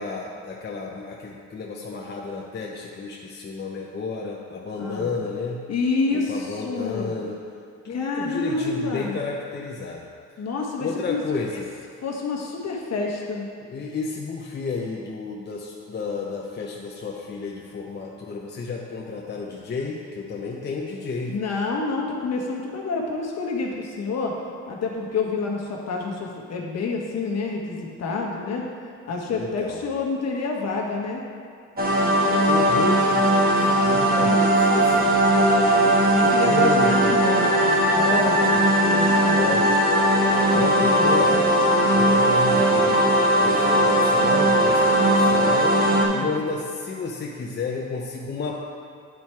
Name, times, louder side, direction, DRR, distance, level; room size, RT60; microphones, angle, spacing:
voice 1, 0.0-5.6 6.1-7.4 7.8-10.1 10.8-11.7 13.7-21.3 29.3-29.8 32.3-35.2 35.4-37.2 38.5-38.6 39.2-41.6 41.9-48.5, left 4 dB, 35° left, -2 dB, 0.8 m, -31 dB
voice 2, 4.8-5.1 5.7-7.1 7.9-9.2 10.4-11.2 11.5-11.6 12.0-13.5 21.3-24.4 24.7-28.7 29.1-31.2 36.1-39.5 40.5-41.4 46.0-46.3, left 4 dB, 60° left, -1 dB, 1.4 m, -28 dB
sound 1, 31.8-46.0, right 1 dB, 30° right, 1.3 m, -19 dB
9.3 x 4.4 x 4.7 m, 2.3 s
cardioid pair, 90°, 30 cm